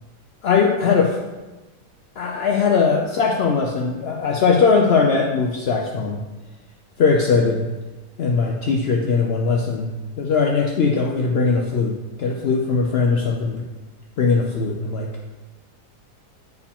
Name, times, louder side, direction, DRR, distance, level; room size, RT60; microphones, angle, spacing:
voice 1, 0.4-1.1 2.2-6.2 7.0-7.7 8.2-9.9 10.2-13.6 14.2-15.1, left 5 dB, 70° left, 0 dB, 0.6 m, -20 dB
9.4 x 4.7 x 3.5 m, 1.2 s
omnidirectional pair, 1.7 m